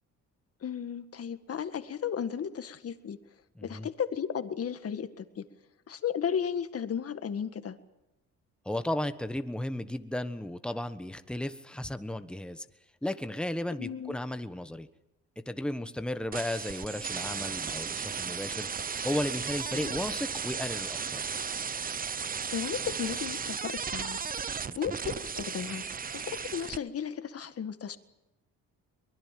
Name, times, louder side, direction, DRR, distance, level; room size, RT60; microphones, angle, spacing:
voice 1, 0.6-3.2 3.6-5.5 5.9-7.8 13.8-14.2 19.8-19.9 22.5-24.2 24.8-25.8 26.1-28.0, left 8 dB, 50° left, 10 dB, 1.8 m, -34 dB
voice 2, 3.5-3.9 8.6-12.6 13.0-14.9 15.4-18.7 19.0-21.2 24.7-24.8, left 1 dB, 5° left, 10 dB, 1.3 m, -34 dB
sound 1, 16.3-26.8, right 6 dB, 30° right, 0.7 m, -35 dB
23.5 x 21.0 x 7.7 m, 0.95 s
cardioid pair, 90°, 30 cm